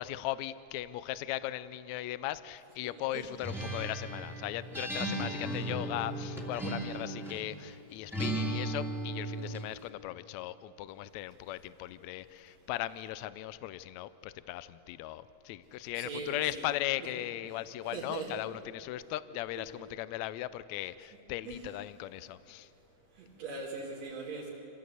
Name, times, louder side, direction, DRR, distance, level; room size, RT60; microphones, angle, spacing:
voice 1, 0.0-22.7, left 14 dB, 80° left, 15 dB, 1.9 m, -38 dB
voice 2, 2.8-3.3 16.0-16.7 17.9-18.4 19.6-19.7 21.4-21.7 23.1-24.5, right 4 dB, 65° right, -5 dB, 3.6 m, -41 dB
Acoustic guitar, 3.4-7.5 8.1-9.7, right 1 dB, ahead, 2.2 m, -36 dB
26.5 x 15.5 x 8.1 m, 2.9 s
omnidirectional pair, 3.3 m